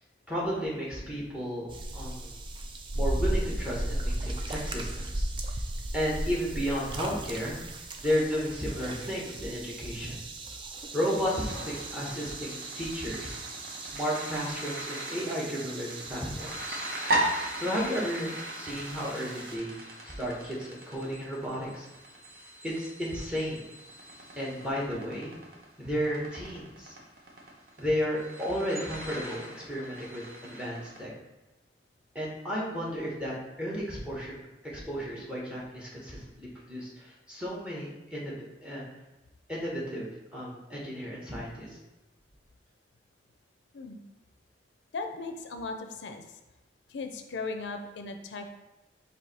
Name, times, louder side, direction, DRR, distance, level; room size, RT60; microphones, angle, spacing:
voice 1, 0.3-1.7 1.9-2.4 2.9-5.3 5.9-7.6 8.0-10.2 10.9-13.4 13.8-16.8 17.5-19.7 20.2-21.9 22.6-23.6 24.4-25.3 25.8-26.9 27.8-31.1 32.1-34.3 34.6-38.8 39.5-41.8, equal, 5° right, -5 dB, 1.1 m, -33 dB
sound 1, 1.7-19.6, right 1 dB, 30° right, 0.4 m, -37 dB
sound 2, 11.2-31.0, right 1 dB, 55° right, 0.9 m, -38 dB
voice 2, 44.9-46.4 46.9-48.5, left 3 dB, 85° left, 6 dB, 0.5 m, -37 dB
4.7 x 2.7 x 4.1 m, 1.0 s
head